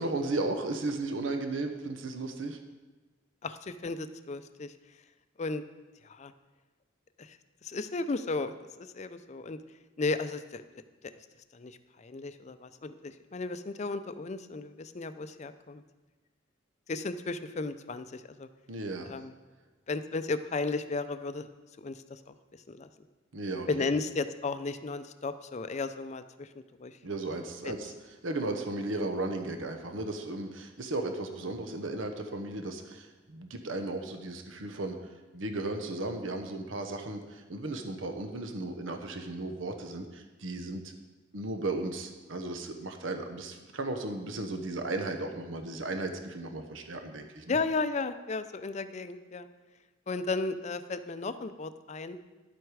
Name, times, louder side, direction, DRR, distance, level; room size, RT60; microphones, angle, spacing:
voice 1, 0.0-2.6 18.7-19.1 23.3-23.9 27.0-27.9 28.2-35.0 35.3-40.8 41.3-47.6, right 2 dB, 85° right, 6 dB, 0.9 m, -35 dB
voice 2, 3.4-4.7 5.4-5.6 6.0-6.3 7.2-9.6 10.0-10.8 11.5-15.8 16.9-18.5 19.0-19.3 19.9-21.5 21.8-22.9 23.7-27.0 27.6-27.7 47.5-49.5 50.1-52.2, left 3 dB, 35° left, 11 dB, 0.5 m, -35 dB
11.0 x 7.9 x 4.8 m, 1.2 s
head